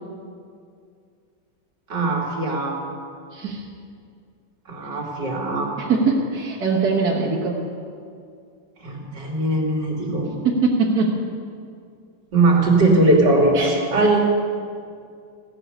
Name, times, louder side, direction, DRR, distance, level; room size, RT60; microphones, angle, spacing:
voice 1, 1.9-2.8 4.7-5.7 8.8-10.3 12.3-14.2, right 2 dB, 75° right, -2 dB, 3.4 m, -20 dB
voice 2, 3.3-3.6 5.8-7.6 10.4-11.1 13.5-13.7, right 4 dB, 60° right, -5 dB, 2.1 m, -21 dB
17.0 x 6.7 x 10.0 m, 2.3 s
omnidirectional pair, 1.9 m